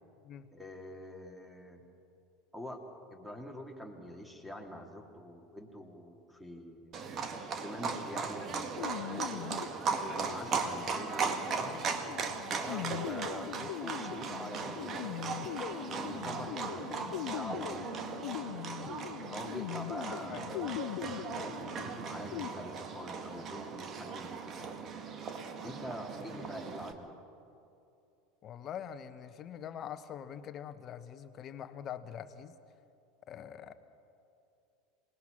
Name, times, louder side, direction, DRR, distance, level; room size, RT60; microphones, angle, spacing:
voice 1, 0.5-1.8 2.5-2.8 3.1-6.9 7.6-9.5 10.1-11.8 12.5-15.0 15.7-18.8 19.3-20.7 21.3-24.9 25.6-27.2, left 1 dB, ahead, 3 dB, 2.9 m, -45 dB
Livestock farm animals working animals, 6.9-26.9, right 5 dB, 35° right, 1.8 m, -38 dB
sound 1, 8.8-22.5, left 18 dB, 55° left, 0.4 m, -42 dB
voice 2, 20.3-20.8 26.3-26.5 28.4-32.5 33.3-33.7, left 9 dB, 35° left, 11 dB, 1.2 m, -44 dB
27.0 x 19.0 x 6.1 m, 2.7 s
figure-of-eight pair, 75°, 0 cm